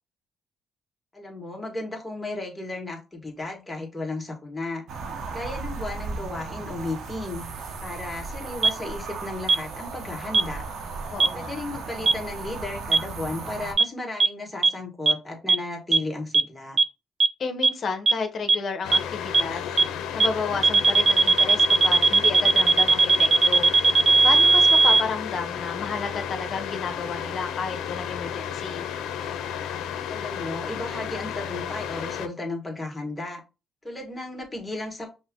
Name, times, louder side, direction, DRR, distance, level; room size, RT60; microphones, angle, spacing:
voice 1, 1.1-4.8 5.3-7.4 7.8-10.6 11.3-16.8 30.1-33.4 33.8-35.1, left 2 dB, 15° left, 1.6 m, -34 dB
sound 1, 4.9-13.7, right 4 dB, 75° right, 0.9 m, -36 dB
sound 2, 8.6-8.7 9.5-9.6 10.3-10.4 11.2-11.3 12.1-12.2 12.9-13.0 13.8-13.9 14.2-14.3 14.6-14.7 15.1-15.2 15.5-15.6 15.9-16.0 16.3-16.4 16.8-16.9 17.2-17.3 17.6-17.7 18.1-18.2 18.5-18.6 18.9-19.0 19.3-19.4 19.8-19.9 20.2-20.3 20.6-25.0, right 4 dB, 50° right, 0.4 m, -17 dB
voice 2, 11.1-11.6 17.4-19.7 20.1-23.7 24.2-28.8, left 4 dB, 55° left, 0.9 m, -32 dB
sound 3, 18.8-32.3, left 8 dB, 90° left, 0.5 m, -33 dB
5.5 x 2.1 x 3.6 m
cardioid pair, 90°, 0 cm